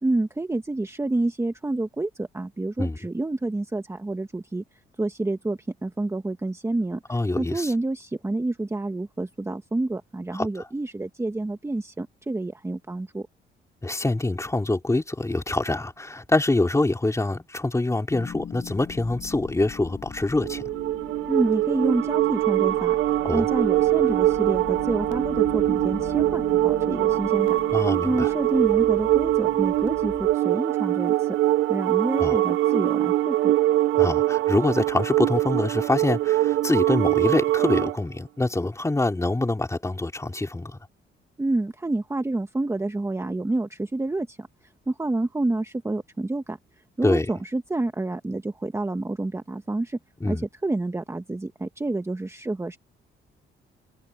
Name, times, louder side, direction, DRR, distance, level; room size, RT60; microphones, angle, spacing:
voice 1, 0.0-4.6 5.0-13.3 21.3-27.6 28.0-31.4 31.7-33.5 41.4-44.5 44.9-46.6 47.0-50.0 50.3-50.4 50.6-52.8, right 2 dB, 15° right, 1.3 m, -28 dB
voice 2, 7.1-7.7 10.3-10.5 13.8-20.6 23.2-23.5 27.7-28.3 32.2-32.4 33.9-40.8 47.0-47.3 50.2-50.5, left 2 dB, 15° left, 3.6 m, -25 dB
sound 1, 18.1-30.4, left 7 dB, 55° left, 6.8 m, -40 dB
sound 2, 20.4-38.0, right 15 dB, 75° right, 0.6 m, -23 dB
cardioid pair, 90°, 20 cm